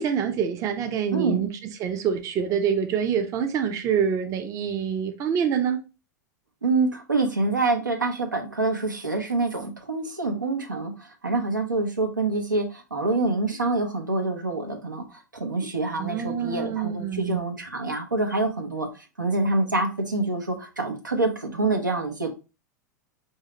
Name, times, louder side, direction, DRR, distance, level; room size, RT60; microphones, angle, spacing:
voice 1, 0.0-1.5 1.8-5.8 16.0-17.4, right 7 dB, 35° right, 0.6 m, -26 dB
voice 2, 1.1-1.5 6.6-18.9 19.2-22.3, right 3 dB, 90° right, 0.8 m, -26 dB
4.7 x 2.7 x 2.9 m
figure-of-eight pair, 90°, 10 cm